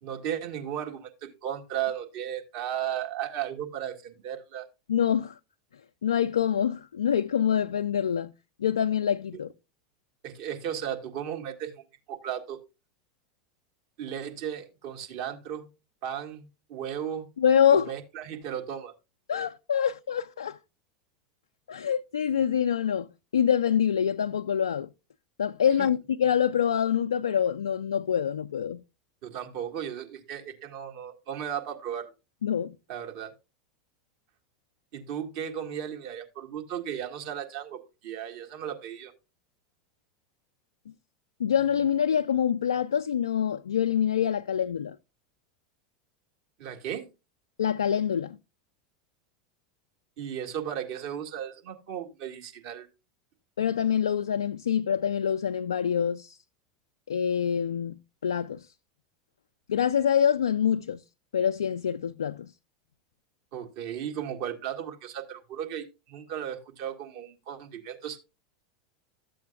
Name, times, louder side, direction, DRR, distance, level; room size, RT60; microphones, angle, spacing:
voice 1, 0.0-4.7 10.2-11.8 12.1-12.6 14.0-15.7 16.0-17.3 17.7-18.9 25.8-25.9 29.2-32.1 32.9-33.3 34.9-39.1 46.6-47.1 50.2-52.9 63.5-68.2, right 9 dB, 60° right, 1.8 m, -35 dB
voice 2, 4.9-5.4 6.0-8.3 8.6-9.5 17.4-17.9 19.3-20.6 21.7-23.1 23.3-24.9 25.4-28.8 32.4-32.8 41.4-45.0 47.6-48.4 53.6-56.4 57.1-58.0 58.2-58.7 59.7-61.0 61.3-62.5, left 8 dB, 80° left, 0.3 m, -25 dB
13.5 x 7.7 x 2.3 m
hypercardioid pair, 85°, 2 cm